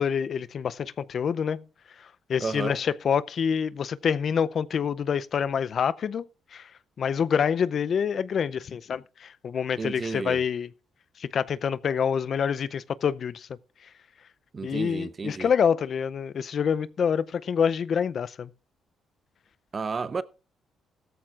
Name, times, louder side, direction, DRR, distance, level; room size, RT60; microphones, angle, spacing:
voice 1, 0.0-1.6 2.0-6.2 6.5-6.7 7.0-10.7 11.2-13.5 14.6-18.5, left 7 dB, 55° left, 0.5 m, -27 dB
voice 2, 2.4-2.8 9.8-10.4 14.5-15.5 19.7-20.2, right 4 dB, 35° right, 0.7 m, -32 dB
15.5 x 13.5 x 2.4 m
cardioid pair, 90°, 0 cm